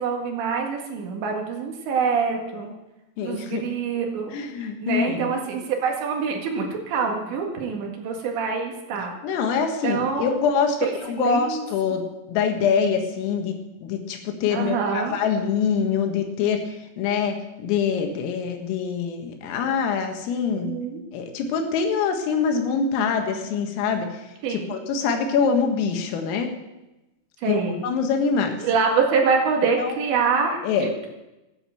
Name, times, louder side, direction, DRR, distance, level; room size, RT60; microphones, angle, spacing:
voice 1, 0.0-2.7 3.2-4.4 4.8-9.2 9.8-10.3 10.8-11.6 14.5-15.2 20.5-21.0 24.4-24.7 27.4-27.8 28.6-31.1, right 5 dB, 65° right, 1 dB, 3.9 m, -25 dB
voice 2, 3.2-3.6 4.3-5.3 9.2-20.7 21.1-24.2 24.5-26.5 27.5-28.6 29.8-30.0 30.6-30.9, left 6 dB, 85° left, 5 dB, 4.3 m, -24 dB
14.0 x 10.5 x 7.7 m, 1.0 s
omnidirectional pair, 5.8 m